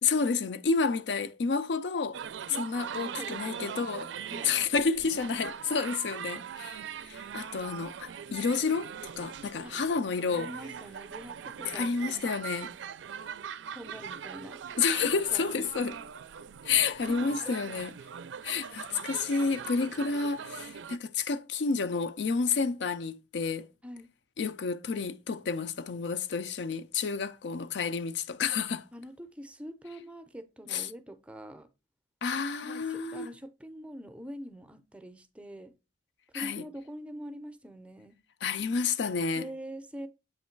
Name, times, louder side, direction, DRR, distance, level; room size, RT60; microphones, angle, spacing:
voice 1, 0.0-2.2 2.5-4.1 4.4-6.8 7.0-10.5 11.7-12.7 14.8-16.0 16.6-17.9 18.4-23.7 24.4-28.8 30.7-30.9 32.2-33.3 36.3-36.6 38.4-39.5, left 5 dB, 75° left, 0.5 m, -30 dB
sound 1, 2.1-21.0, right 7 dB, 85° right, 0.4 m, -41 dB
voice 2, 3.1-3.8 4.3-4.6 9.6-9.8 10.3-11.9 13.7-14.6 15.0-15.7 17.1-17.6 23.8-24.1 28.9-31.7 32.6-35.7 36.3-38.2 39.4-40.1, equal, 5° right, 0.5 m, -44 dB
7.7 x 3.1 x 4.4 m
head